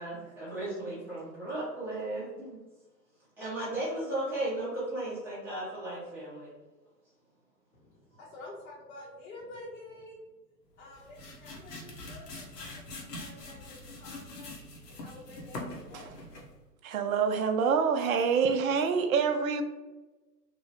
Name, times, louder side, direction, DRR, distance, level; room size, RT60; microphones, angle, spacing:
voice 1, 0.0-2.6 3.4-6.5, right 1 dB, 5° right, -10 dB, 0.6 m, -35 dB
voice 2, 7.7-10.2 10.8-14.5 14.9-16.2, left 2 dB, 50° left, -5 dB, 0.8 m, -49 dB
sound 1, 10.8-16.6, left 2 dB, 75° left, 0.9 m, -44 dB
voice 3, 16.8-19.6, right 6 dB, 60° right, 7 dB, 0.5 m, -26 dB
3.0 x 2.1 x 2.7 m, 1.2 s
hypercardioid pair, 130°, 49 cm